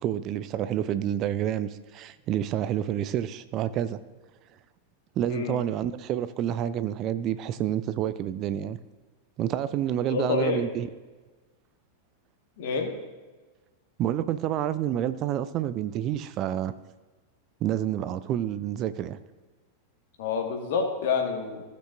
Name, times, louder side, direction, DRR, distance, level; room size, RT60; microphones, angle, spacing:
voice 1, 0.0-4.0 5.2-8.8 9.4-10.9 14.0-16.7 17.6-19.2, right 11 dB, 35° right, 13 dB, 0.4 m, -28 dB
voice 2, 5.3-5.6 10.1-10.6 12.6-12.9 20.2-21.6, left 5 dB, 55° left, 3 dB, 1.6 m, -28 dB
15.5 x 6.7 x 2.6 m, 1.3 s
figure-of-eight pair, 90°, 0 cm